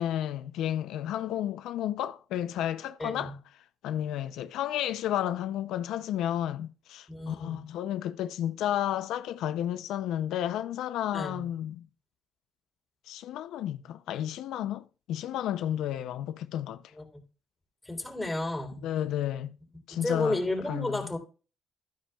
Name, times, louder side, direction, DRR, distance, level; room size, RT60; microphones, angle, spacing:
voice 1, 0.0-3.3 3.8-11.9 13.1-16.8 18.8-19.5 19.9-20.4 20.7-21.0, left 11 dB, 85° left, 0.5 m, -32 dB
voice 2, 3.0-3.4 7.1-7.6 11.1-11.5 16.9-17.2 17.9-18.9 19.9-21.2, left 2 dB, 10° left, 3.5 m, -32 dB
13.0 x 9.9 x 2.3 m
cardioid pair, 90°, 0 cm